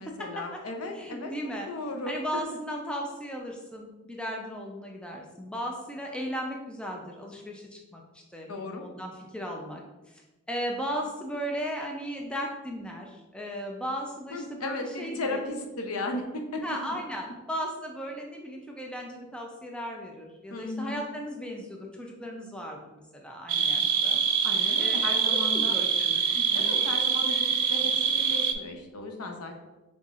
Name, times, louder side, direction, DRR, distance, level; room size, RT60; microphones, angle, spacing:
voice 1, 0.0-1.3 1.7-2.4 8.5-8.8 14.3-16.6 20.5-21.0 24.4-25.7 26.3-29.6, left 2 dB, 85° left, 4 dB, 0.7 m, -35 dB
voice 2, 0.9-1.7 2.1-8.0 8.3-9.8 10.1-15.4 16.6-24.2 24.8-26.8, equal, 5° left, 0 dB, 0.4 m, -36 dB
sound 1, 23.5-28.5, right 6 dB, 85° right, 0.4 m, -25 dB
5.6 x 3.7 x 2.4 m, 1.1 s
head